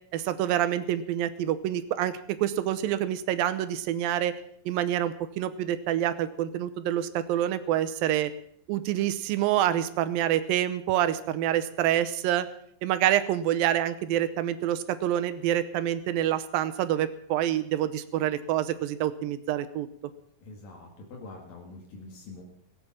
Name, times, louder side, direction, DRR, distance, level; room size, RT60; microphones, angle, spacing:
voice 1, 0.1-4.3 4.7-8.3 8.7-12.5 12.8-19.9, right 11 dB, 85° right, 11 dB, 2.6 m, -27 dB
voice 2, 20.4-22.4, left 3 dB, 75° left, 0 dB, 3.7 m, -45 dB
17.5 x 8.7 x 7.2 m, 0.67 s
omnidirectional pair, 4.0 m